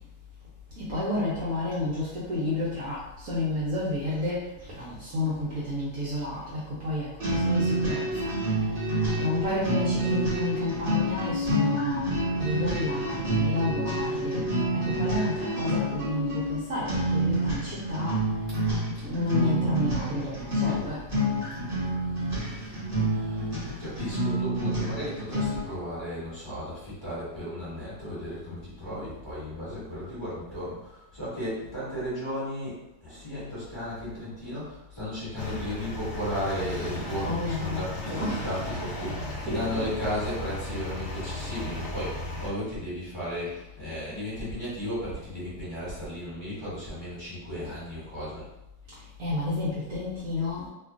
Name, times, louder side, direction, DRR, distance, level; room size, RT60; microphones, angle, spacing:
voice 1, 0.8-8.3 9.2-14.5 14.8-18.2 19.0-21.3 37.2-38.6 39.5-40.2 49.2-50.7, left 2 dB, 65° right, -8 dB, 1.0 m, -31 dB
sound 1, 7.2-25.7, right 1 dB, 40° right, 1.1 m, -28 dB
voice 2, 22.1-48.4, equal, 15° left, -11 dB, 1.3 m, -35 dB
sound 2, 35.4-42.5, left 1 dB, 50° left, 1.1 m, -35 dB
2.8 x 2.4 x 2.4 m, 0.92 s
omnidirectional pair, 1.9 m